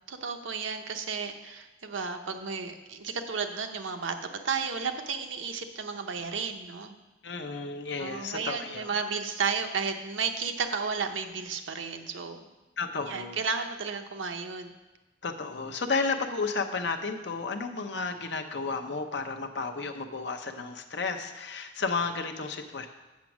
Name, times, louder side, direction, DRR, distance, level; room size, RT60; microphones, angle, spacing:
voice 1, 0.1-6.9 8.0-12.4 13.1-14.7, right 5 dB, 85° right, 6 dB, 0.7 m, -33 dB
voice 2, 7.2-8.9 12.8-13.4 15.2-22.9, left 4 dB, 65° left, 5 dB, 0.7 m, -32 dB
7.4 x 6.2 x 6.0 m, 1.1 s
head